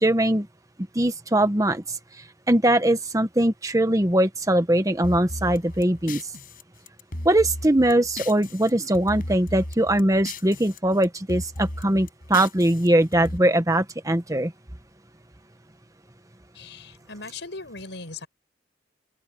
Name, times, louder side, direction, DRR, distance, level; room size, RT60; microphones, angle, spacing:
voice 1, 0.0-0.5 0.9-2.0 2.5-6.2 7.2-14.5, right 1 dB, 20° right, 1.1 m, -21 dB
sound 1, 5.0-8.7 8.9-10.8 11.0-13.4, left 1 dB, 50° left, 6.7 m, -36 dB
voice 2, 16.5-18.3, left 3 dB, 70° left, 5.6 m, -38 dB
open air
head